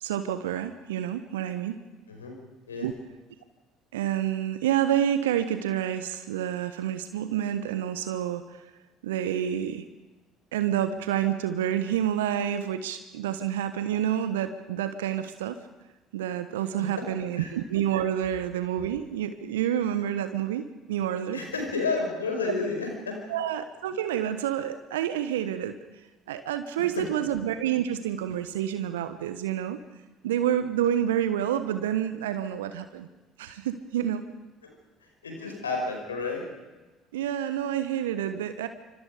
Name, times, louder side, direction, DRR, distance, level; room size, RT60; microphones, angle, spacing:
voice 1, 0.0-1.8 2.8-2.9 3.9-8.6 9.0-9.9 10.5-15.6 16.1-21.4 23.3-25.7 26.3-29.8 30.2-33.1 33.4-34.2 37.1-38.7, right 10 dB, 75° right, 10 dB, 1.2 m, -28 dB
voice 2, 16.8-17.5 21.3-23.4 26.8-27.3 34.6-34.7 35.2-36.5, left 3 dB, 85° left, 2 dB, 5.5 m, -31 dB
27.5 x 25.5 x 5.1 m, 1.2 s
figure-of-eight pair, 55°, 0 cm